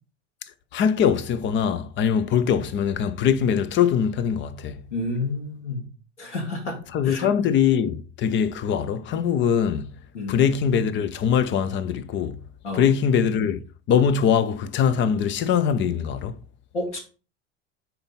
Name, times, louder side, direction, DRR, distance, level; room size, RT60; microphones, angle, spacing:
voice 1, 0.7-4.8 6.9-9.9 10.3-12.4 12.7-13.6 13.9-16.4, left 8 dB, 35° left, 0.7 m, -22 dB
voice 2, 4.9-5.9 6.2-7.3 10.1-10.4 12.6-12.9 16.7-17.0, left 2 dB, 80° left, 1.8 m, -30 dB
5.3 x 4.5 x 5.4 m
figure-of-eight pair, 75°, 35 cm